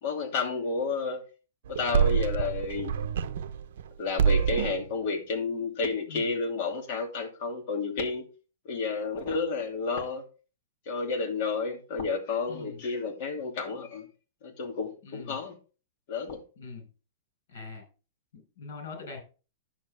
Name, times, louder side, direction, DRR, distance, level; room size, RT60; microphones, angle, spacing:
voice 1, 0.0-1.2 1.7-3.0 4.0-8.2 8.7-10.2 10.9-14.1 14.4-15.6 16.1-16.4, left 4 dB, 40° left, 2.8 m, -31 dB
sound 1, 1.7-3.9 4.2-4.9, right 7 dB, 65° right, 0.8 m, -26 dB
voice 2, 12.5-12.8 15.0-15.4 16.6-16.9 17.5-17.8 18.3-19.2, left 4 dB, 70° left, 5.2 m, -42 dB
10.5 x 7.5 x 3.7 m
supercardioid pair, 175°, 0 cm